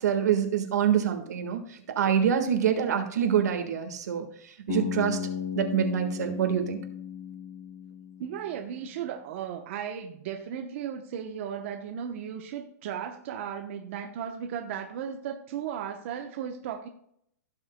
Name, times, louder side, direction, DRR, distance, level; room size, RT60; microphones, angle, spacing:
voice 1, 0.0-4.2 4.7-5.2 5.5-6.8, right 8 dB, 80° right, 6 dB, 1.6 m, -26 dB
Bass guitar, 4.7-8.7, left 7 dB, 75° left, 3.5 m, -35 dB
voice 2, 8.2-16.9, right 8 dB, 50° right, 4 dB, 0.9 m, -35 dB
16.0 x 6.3 x 2.2 m, 0.69 s
hypercardioid pair, 160°, 9 cm